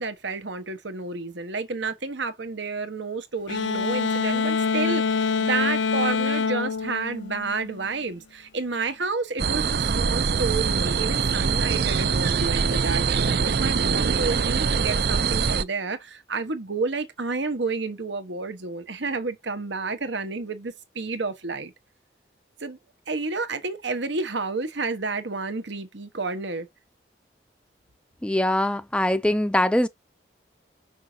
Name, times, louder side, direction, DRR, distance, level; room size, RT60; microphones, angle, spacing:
voice 1, 0.0-21.7 22.6-22.8 23.1-26.7, right 3 dB, 80° right, 1.2 m, -30 dB
sound 1, 3.5-7.9, left 5 dB, 80° left, 0.6 m, -25 dB
sound 2, 9.4-15.6, right 6 dB, 55° right, 0.5 m, -23 dB
voice 2, 28.2-29.9, left 1 dB, 5° left, 0.4 m, -22 dB
6.1 x 5.6 x 2.8 m
head